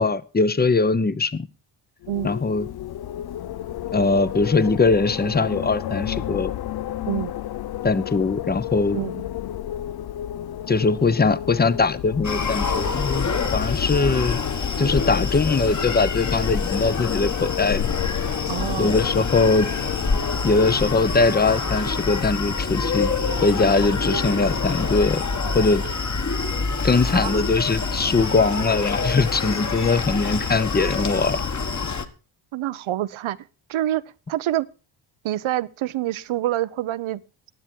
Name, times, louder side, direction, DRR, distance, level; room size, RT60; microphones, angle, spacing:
voice 1, 0.0-1.5 2.2-2.7 3.9-6.5 7.8-9.0 10.7-14.4 14.8-17.9 18.8-19.7 20.4-23.1 23.4-25.2 25.5-25.8 26.8-31.4, left 3 dB, 20° left, 0.9 m, -21 dB
Wind, 2.0-21.0, left 12 dB, 50° left, 0.5 m, -32 dB
voice 2, 8.9-9.2 18.5-18.9 25.8-25.9 27.0-27.4 32.5-33.4 33.7-34.0 34.3-34.7 35.2-37.2, right 13 dB, 75° right, 0.9 m, -26 dB
Screaming, 12.2-32.1, left 4 dB, 35° left, 1.7 m, -26 dB
15.5 x 9.9 x 4.5 m
cardioid pair, 75°, 49 cm